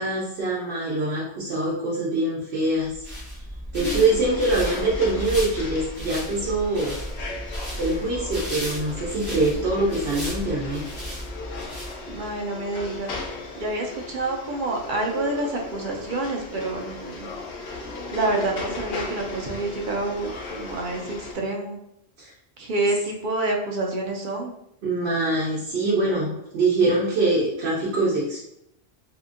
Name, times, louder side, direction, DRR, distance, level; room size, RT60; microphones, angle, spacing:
voice 1, 0.0-3.1 3.7-7.0 7.8-10.9 22.2-22.3 24.8-28.4, right 2 dB, 80° right, -5 dB, 0.9 m, -24 dB
sound 1, 2.8-12.3, equal, 15° left, 0.9 m, -34 dB
voice 2, 3.7-4.1 12.1-13.1 13.6-17.3 18.1-21.8 22.6-24.5, right 2 dB, 60° right, 1 dB, 0.6 m, -28 dB
sound 2, 3.8-21.3, left 3 dB, 90° left, 0.9 m, -37 dB
2.8 x 2.4 x 2.5 m, 0.78 s
omnidirectional pair, 1.1 m